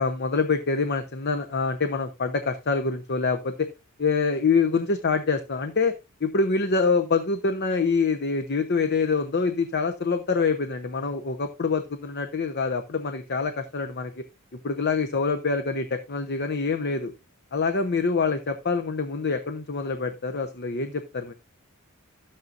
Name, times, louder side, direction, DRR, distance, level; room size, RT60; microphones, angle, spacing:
voice 1, 0.0-3.7 4.0-5.9 6.2-14.1 14.6-17.1 17.5-21.3, left 4 dB, 50° left, 7 dB, 0.9 m, -25 dB
12.0 x 8.8 x 2.6 m, 0.25 s
head